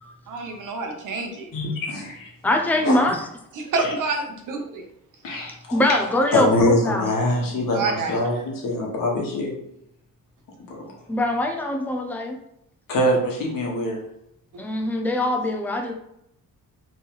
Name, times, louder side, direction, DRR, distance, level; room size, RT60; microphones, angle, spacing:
voice 1, 0.3-1.5 3.5-4.8 7.7-8.2, right 3 dB, 65° right, 2 dB, 0.9 m, -27 dB
voice 2, 1.5-2.3 2.8-3.0 3.8-3.9 5.2-9.5 10.7-10.8 12.9-14.0, left 1 dB, 75° left, -1 dB, 1.2 m, -24 dB
voice 3, 2.4-3.2 5.7-7.1 11.1-12.4 14.6-15.9, left 1 dB, 5° left, 3 dB, 0.4 m, -22 dB
3.3 x 3.0 x 3.5 m, 0.76 s
wide cardioid pair, 175°, 34 cm